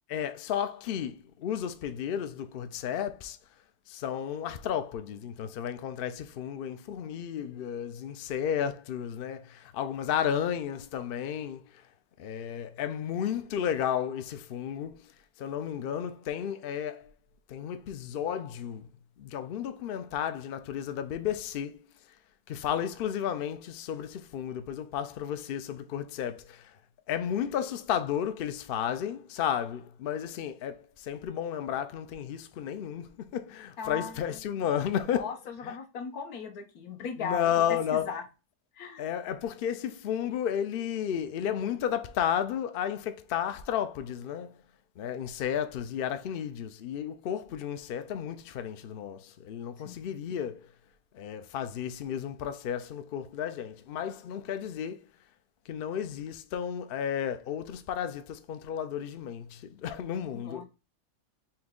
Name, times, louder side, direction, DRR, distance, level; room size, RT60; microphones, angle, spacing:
voice 1, 0.1-3.4 3.9-11.9 12.2-15.1 15.4-17.1 17.5-18.9 19.2-21.8 22.5-26.8 27.1-35.3 35.6-35.7 37.2-38.2 39.0-44.6 45.0-50.7 51.1-55.0 55.7-60.6, left 9 dB, 65° left, 0.5 m, -33 dB
voice 2, 33.8-34.2 35.1-37.4 37.9-38.2 38.8-39.0 49.8-50.0 60.3-60.7, left 5 dB, 85° left, 1.5 m, -37 dB
4.3 x 2.9 x 3.6 m
omnidirectional pair, 1.5 m